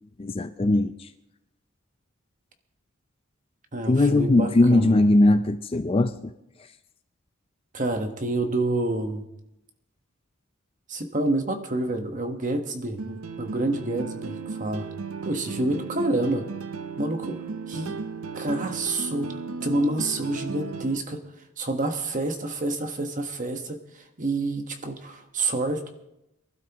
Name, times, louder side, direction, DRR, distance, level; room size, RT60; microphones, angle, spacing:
voice 1, 0.2-1.1 3.9-6.3, left 2 dB, 25° left, 10 dB, 0.4 m, -20 dB
voice 2, 3.7-5.1 7.7-9.2 10.9-14.9 15.2-16.5 17.0-17.4 17.7-18.0 18.3-21.3 21.6-25.9, right 2 dB, 40° right, 5 dB, 1.4 m, -28 dB
sound 1, 13.0-21.0, right 5 dB, 90° right, 0.7 m, -35 dB
23.5 x 12.0 x 3.0 m, 0.86 s
head